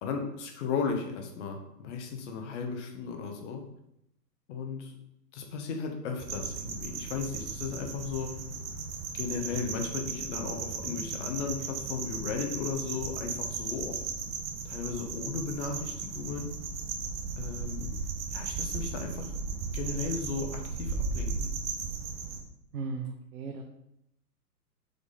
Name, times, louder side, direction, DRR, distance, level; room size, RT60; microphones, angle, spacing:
voice 1, 0.0-3.6 4.5-4.9 5.3-8.3 9.1-14.0 14.6-16.5 17.4-17.9 18.3-19.3 19.7-21.5, left 5 dB, 45° left, 3 dB, 1.4 m, -35 dB
sound 1, 6.2-22.4, right 5 dB, 25° right, 0.8 m, -36 dB
voice 2, 22.7-23.6, right 4 dB, 65° right, 3 dB, 1.0 m, -36 dB
6.9 x 3.7 x 4.1 m, 0.80 s
hypercardioid pair, 125°, 48 cm